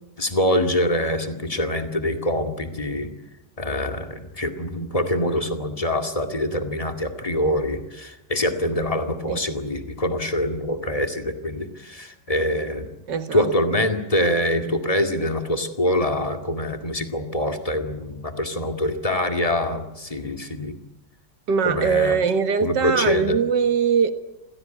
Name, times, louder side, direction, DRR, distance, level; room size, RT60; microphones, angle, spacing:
voice 1, 0.2-3.1 3.6-12.9 13.3-20.8 21.6-22.2 22.6-23.4, left 1 dB, 20° left, 6 dB, 2.1 m, -24 dB
voice 2, 13.1-13.8 21.5-24.1, right 6 dB, 70° right, 9 dB, 2.1 m, -22 dB
27.5 x 16.5 x 9.3 m, 0.97 s
omnidirectional pair, 2.0 m